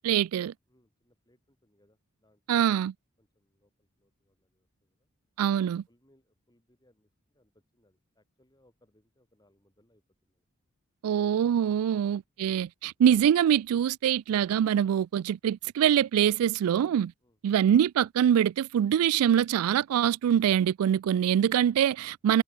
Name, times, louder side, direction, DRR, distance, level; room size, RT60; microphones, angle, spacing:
voice 1, 0.0-0.5 2.5-2.9 5.4-5.8 11.0-17.1 17.4-22.4, right 9 dB, 80° right, 0.3 m, -24 dB
voice 2, 0.7-2.8 3.2-5.1 5.9-10.4 17.2-17.4, left 1 dB, 20° left, 5.8 m, -69 dB
head